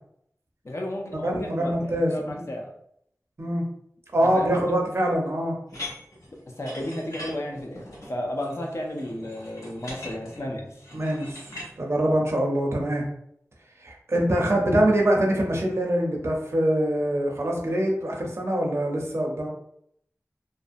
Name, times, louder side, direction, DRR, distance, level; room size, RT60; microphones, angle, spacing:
voice 1, 0.6-2.7 4.2-4.8 6.6-10.7, left 1 dB, 50° left, 0 dB, 0.5 m, -33 dB
voice 2, 1.2-2.4 3.4-3.6 4.1-5.5 10.9-11.5 11.8-13.1 13.8-19.5, right 1 dB, 50° right, -1 dB, 0.6 m, -24 dB
sound 1, 5.7-11.7, left 1 dB, 70° left, 0.9 m, -41 dB
2.5 x 2.0 x 2.5 m, 0.71 s
wide cardioid pair, 55°, 6 cm